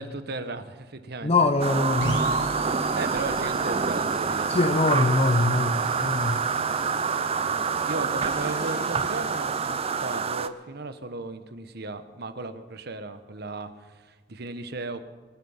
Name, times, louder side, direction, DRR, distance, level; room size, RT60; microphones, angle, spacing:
voice 1, 0.0-1.3 2.9-5.3 7.4-15.0, right 2 dB, 60° right, 1.1 m, -36 dB
voice 2, 1.2-2.3 4.5-6.4, left 2 dB, 35° left, 0.7 m, -23 dB
sound 1, 1.6-10.5, right 5 dB, 35° right, 0.5 m, -27 dB
sound 2, 2.0-9.6, equal, 80° left, 2.9 m, -39 dB
sound 3, 8.2-10.7, left 5 dB, 55° left, 2.0 m, -49 dB
23.0 x 9.1 x 5.7 m
head